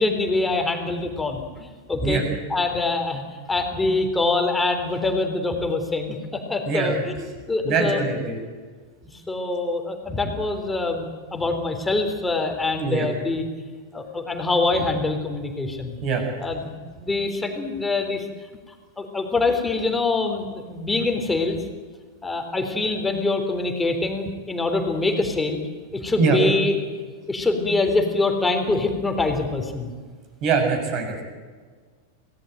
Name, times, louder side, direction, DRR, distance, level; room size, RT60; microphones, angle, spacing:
voice 1, 0.0-2.2 2.5-3.2 3.5-8.0 9.1-13.4 13.9-16.0 16.4-18.3 19.0-21.6 22.2-25.6 25.9-26.7 27.3-29.9, left 3 dB, 10° left, 4 dB, 3.7 m, -24 dB
voice 2, 6.7-7.0 7.6-8.4 12.8-13.1 16.0-16.2 26.2-26.4 30.4-31.2, right 5 dB, 40° right, 4 dB, 6.9 m, -23 dB
26.5 x 18.5 x 9.2 m, 1.5 s
figure-of-eight pair, 90°, 0 cm